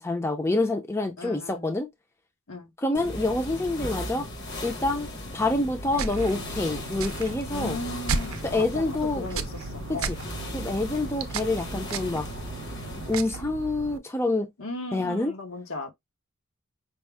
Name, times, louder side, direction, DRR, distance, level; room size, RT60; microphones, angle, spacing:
voice 1, 0.0-1.9 2.8-4.3 4.6-7.8 8.4-9.2 9.9-10.2 10.5-12.3 13.1-14.5 14.9-15.3, left 2 dB, 10° left, 0.5 m, -27 dB
voice 2, 1.2-1.7 2.5-2.7 7.5-10.1 14.6-15.9, left 2 dB, 75° left, 1.2 m, -36 dB
sound 1, 2.9-13.2, left 1 dB, 55° left, 1.1 m, -37 dB
sound 2, 5.9-14.0, right 4 dB, 75° right, 0.5 m, -35 dB
5.3 x 2.1 x 3.4 m
head